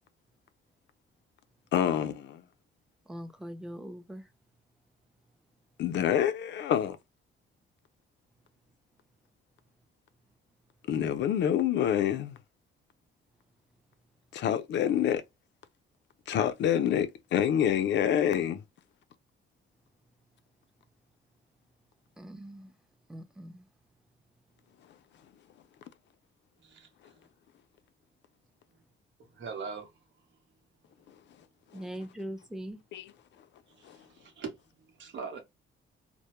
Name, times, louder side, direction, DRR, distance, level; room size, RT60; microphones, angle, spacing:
voice 1, 1.7-2.4 5.8-7.0 10.9-12.4 14.3-15.2 16.3-18.6 32.9-33.1 33.8-34.0, left 9 dB, 65° left, 0.4 m, -27 dB
voice 2, 3.1-4.2 22.2-22.7 23.1-23.7 31.7-32.8, equal, 5° right, 0.5 m, -41 dB
voice 3, 26.6-27.3 28.7-28.8 29.2-30.4 33.7-35.4, right 5 dB, 70° right, 0.9 m, -43 dB
2.1 x 2.0 x 2.9 m
cardioid pair, 90°, 20 cm